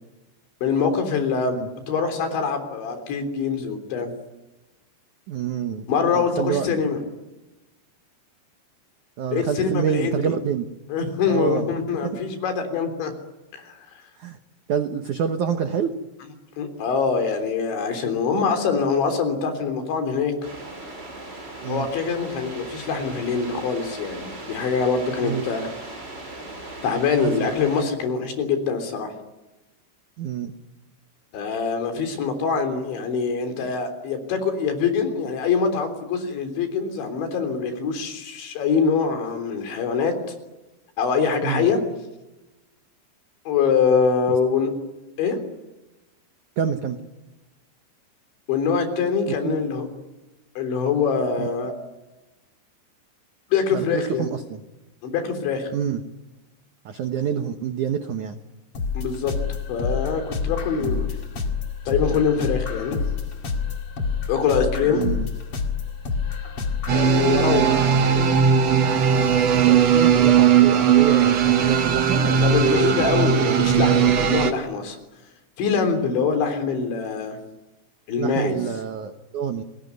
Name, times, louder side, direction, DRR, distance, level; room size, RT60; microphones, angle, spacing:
voice 1, 0.6-1.6 1.9-4.1 5.9-7.0 9.3-10.3 10.9-13.1 13.5-13.8 16.6-20.3 21.7-25.7 26.8-29.1 31.3-40.1 41.0-41.8 43.5-44.7 45.2-45.4 48.5-49.9 50.6-51.7 53.5-54.3 55.0-55.7 59.0-59.3 59.7-61.1 61.9-63.0 64.3-65.0 66.9-68.3 72.4-75.0 75.6-77.4 78.1-78.6, left 5 dB, 75° left, 7 dB, 5.8 m, -24 dB
voice 2, 5.3-5.9 6.1-6.7 9.2-10.7 11.3-11.7 12.0-12.2 14.2-14.4 14.7-15.9 21.6-21.9 25.2-25.5 27.2-27.5 30.2-30.5 41.4-41.7 46.6-47.0 49.4-49.7 51.4-51.5 53.7-54.6 55.7-56.0 56.9-58.4 60.8-61.0 64.9-65.3 67.5-68.1 69.5-73.5 78.2-79.6, right 8 dB, 75° right, 7 dB, 1.7 m, -27 dB
sound 1, 20.4-27.8, right 2 dB, 20° right, 6.2 m, -38 dB
sound 2, 58.7-67.1, left 5 dB, 40° left, 2.3 m, -28 dB
sound 3, 66.9-74.5, right 7 dB, 60° right, 1.8 m, -18 dB
29.0 x 20.5 x 9.5 m, 1.0 s
omnidirectional pair, 5.3 m